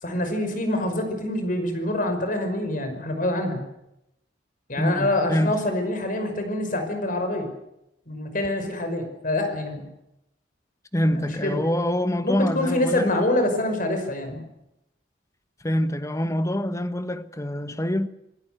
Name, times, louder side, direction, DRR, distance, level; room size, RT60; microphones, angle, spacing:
voice 1, 0.0-3.6 4.7-7.5 8.1-9.9 11.1-11.6 12.2-14.4, left 1 dB, 45° left, 5.7 m, -26 dB
voice 2, 4.8-5.6 10.9-13.1 15.6-18.1, equal, 15° left, 1.3 m, -25 dB
27.0 x 16.5 x 8.0 m
head